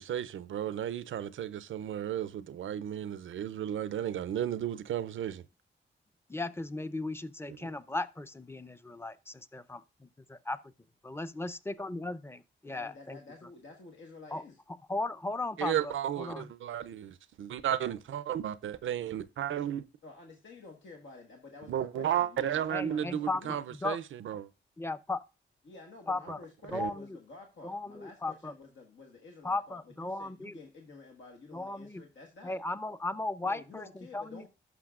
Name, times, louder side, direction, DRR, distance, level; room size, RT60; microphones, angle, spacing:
voice 1, 0.0-5.4 15.6-19.8 21.7-24.0 24.3-24.5 26.7-26.9, right 10 dB, 85° right, 0.5 m, -33 dB
voice 2, 6.3-10.7 11.0-13.2 14.3-14.4 14.9-16.5 22.7-24.0 24.8-25.2 26.1-26.4 26.7-27.2 27.6-28.5 29.4-30.6 31.5-32.0 32.4-34.5, left 2 dB, 10° left, 0.6 m, -36 dB
voice 3, 12.6-14.6 20.0-23.6 25.6-32.6 33.4-34.5, left 3 dB, 75° left, 1.4 m, -51 dB
12.0 x 5.9 x 2.4 m
cardioid pair, 60°, 20 cm